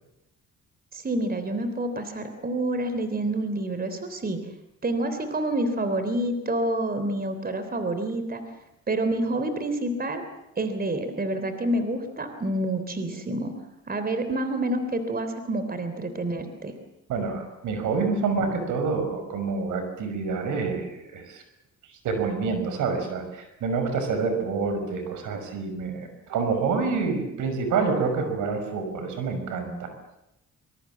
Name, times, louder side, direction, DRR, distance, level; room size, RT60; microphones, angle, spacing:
voice 1, 0.9-4.4 4.8-8.4 8.9-10.2 10.6-13.5 13.9-16.7, right 1 dB, 30° right, 9 dB, 3.5 m, -28 dB
voice 2, 17.1-21.4 22.0-29.9, right 4 dB, 85° right, 7 dB, 5.9 m, -27 dB
23.5 x 22.0 x 7.5 m, 0.87 s
cardioid pair, 90°, 30 cm